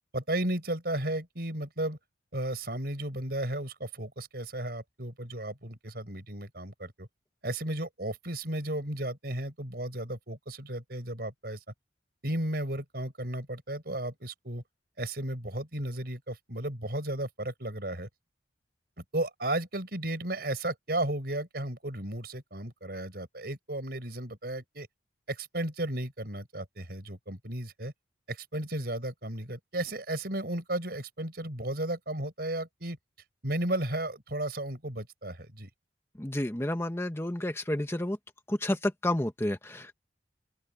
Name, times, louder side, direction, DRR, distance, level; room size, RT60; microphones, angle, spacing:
voice 1, 0.1-2.0 2.3-7.1 7.4-11.6 12.2-14.6 15.0-18.1 19.0-24.9 25.3-27.9 28.3-33.0 33.4-35.7, right 1 dB, 55° right, 5.8 m, -34 dB
voice 2, 36.2-38.2 38.5-39.9, left 1 dB, 15° left, 1.0 m, -30 dB
open air
head